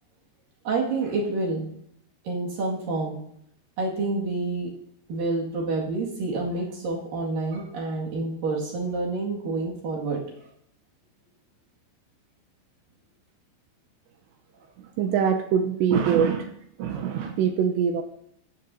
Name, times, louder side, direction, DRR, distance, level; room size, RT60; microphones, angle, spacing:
voice 1, 0.6-1.7 2.2-3.2 3.8-4.7 5.1-10.2, right 3 dB, 55° right, -3 dB, 3.1 m, -28 dB
voice 2, 15.0-16.5 16.8-18.0, right 7 dB, 85° right, 5 dB, 2.6 m, -23 dB
16.0 x 12.5 x 2.7 m, 0.71 s
omnidirectional pair, 5.8 m